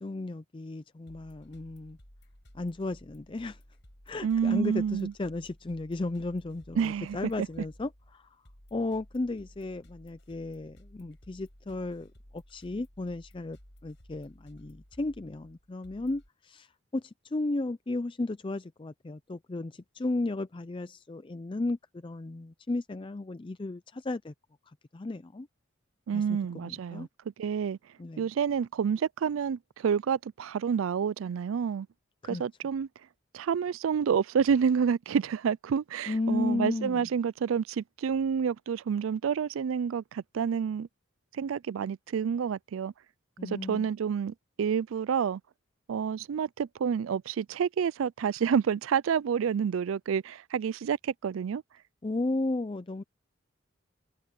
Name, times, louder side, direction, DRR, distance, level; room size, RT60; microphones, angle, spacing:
voice 1, 0.0-2.0 2.5-3.6 4.1-8.4 8.7-24.3 24.9-25.5 26.1-27.1 28.0-28.2 32.2-32.4 36.1-37.1 43.4-43.9 52.0-53.0, left 2 dB, 25° left, 0.4 m, -34 dB
sound 1, 1.1-16.3, equal, 60° left, 7.8 m, -56 dB
voice 2, 4.2-5.1 6.8-7.5 26.1-27.1 27.4-27.8 28.2-31.9 32.3-32.9 33.3-40.9 41.3-42.9 43.4-45.4 45.9-51.6, right 7 dB, 80° right, 0.4 m, -29 dB
head